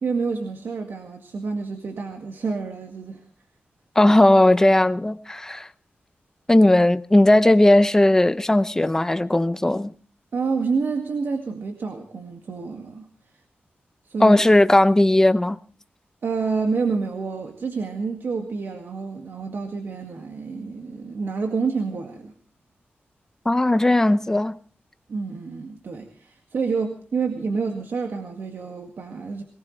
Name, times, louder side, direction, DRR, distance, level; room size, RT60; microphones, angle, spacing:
voice 1, 0.0-3.2 10.3-13.1 14.1-14.4 16.2-22.3 25.1-29.4, right 4 dB, 65° right, 2.0 m, -28 dB
voice 2, 4.0-5.7 6.5-9.9 14.2-15.6 23.5-24.6, left 1 dB, 15° left, 0.7 m, -17 dB
22.5 x 19.0 x 3.2 m
wide cardioid pair, 165°, 4 cm